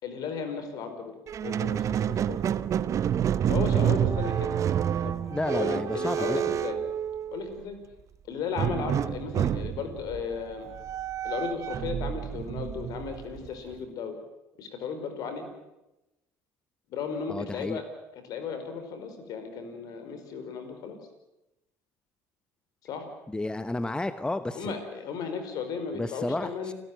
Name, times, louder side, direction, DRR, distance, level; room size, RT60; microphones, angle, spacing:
voice 1, 0.0-2.4 3.5-4.6 5.0-5.2 5.5-6.8 7.3-7.8 8.3-10.7 11.2-14.2 14.6-15.5 16.9-17.8 18.1-21.0 22.8-23.1 24.5-26.7, left 6 dB, 65° left, 8 dB, 4.8 m, -35 dB
Squeak, 1.3-7.6 8.6-13.7, right 9 dB, 45° right, 0.9 m, -29 dB
voice 2, 5.3-6.4 17.3-17.8 23.3-24.8 25.9-26.7, left 2 dB, 10° left, 12 dB, 1.1 m, -31 dB
29.0 x 13.0 x 9.4 m, 0.96 s
hypercardioid pair, 70°, 7 cm